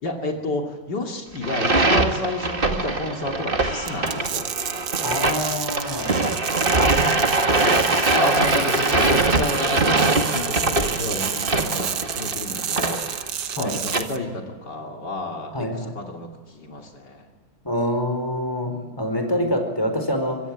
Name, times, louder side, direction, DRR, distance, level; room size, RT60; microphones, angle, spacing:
voice 1, 0.0-4.5 6.1-6.4 7.7-13.0 13.5-17.3 18.6-18.9, left 2 dB, 75° left, 2 dB, 3.5 m, -31 dB
sound 1, 1.4-14.0, right 2 dB, 30° right, 2.2 m, -22 dB
sound 2, 3.9-14.2, right 9 dB, 75° right, 1.7 m, -30 dB
voice 2, 5.0-6.1 13.6-13.7 15.5-16.0 17.6-20.4, equal, 15° left, 5 dB, 4.7 m, -25 dB
25.0 x 23.5 x 8.8 m, 1.4 s
omnidirectional pair, 1.9 m